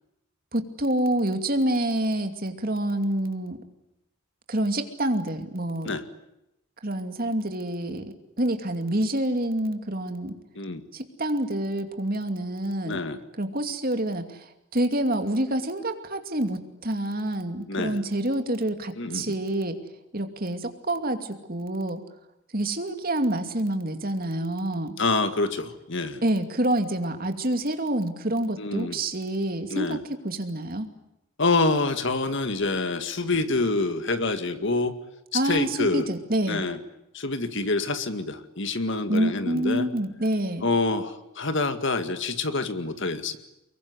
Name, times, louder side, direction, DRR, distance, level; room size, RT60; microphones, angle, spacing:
voice 1, 0.5-3.6 4.5-5.9 6.8-10.4 10.9-13.0 13.4-19.8 20.1-22.0 22.5-24.9 26.2-30.0 30.2-30.9 35.3-36.7 39.1-40.7, right 1 dB, 40° right, 7 dB, 2.6 m, -27 dB
voice 2, 12.8-13.2 17.7-18.0 19.0-19.3 25.0-26.2 28.6-29.0 29.7-30.0 31.4-34.9 35.3-36.1 36.5-36.8 37.1-39.9 40.6-43.4, left 3 dB, 55° left, 10 dB, 2.0 m, -26 dB
24.5 x 22.5 x 9.8 m, 0.85 s
head